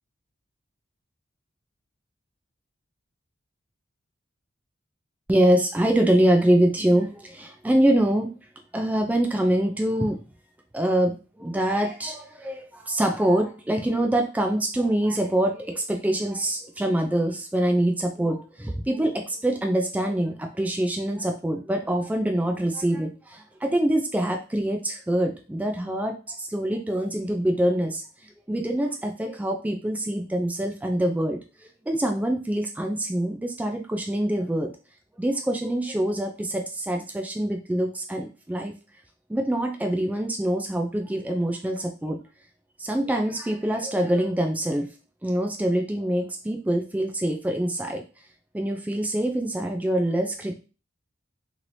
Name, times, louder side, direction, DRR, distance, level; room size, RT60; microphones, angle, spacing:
voice 1, 5.3-8.3 8.7-10.2 10.7-28.0 28.5-31.4 31.9-34.7 35.2-38.7 39.3-42.2 42.8-44.9 45.2-48.0 48.5-50.6, right 1 dB, 10° right, 3 dB, 0.3 m, -25 dB
3.2 x 2.9 x 2.6 m, 0.33 s
head